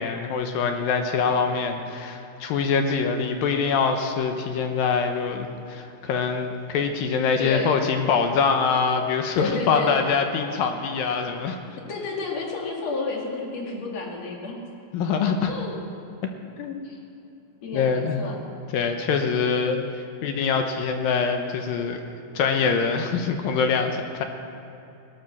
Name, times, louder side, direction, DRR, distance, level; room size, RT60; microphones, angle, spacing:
voice 1, 0.0-11.6 14.9-15.5 16.6-16.8 17.7-18.2 18.7-19.8 20.2-22.0 22.4-24.3, left 5 dB, 75° left, 5 dB, 2.6 m, -24 dB
voice 2, 7.4-7.8 9.4-10.0 11.9-14.7 15.4-15.8 16.8-17.0 17.6-18.4, left 3 dB, 45° left, -1 dB, 3.1 m, -31 dB
18.5 x 12.5 x 6.2 m, 2.8 s
omnidirectional pair, 4.5 m